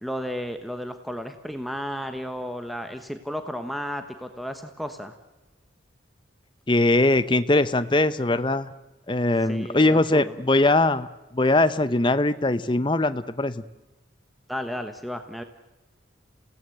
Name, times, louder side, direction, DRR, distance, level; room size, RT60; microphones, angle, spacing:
voice 1, 0.0-5.1 9.5-10.3 14.5-15.4, equal, ahead, 7 dB, 1.1 m, -33 dB
voice 2, 6.7-8.7 9.1-11.1 11.3-13.6, left 2 dB, 25° left, 13 dB, 0.8 m, -21 dB
28.5 x 17.5 x 7.9 m, 1.1 s
head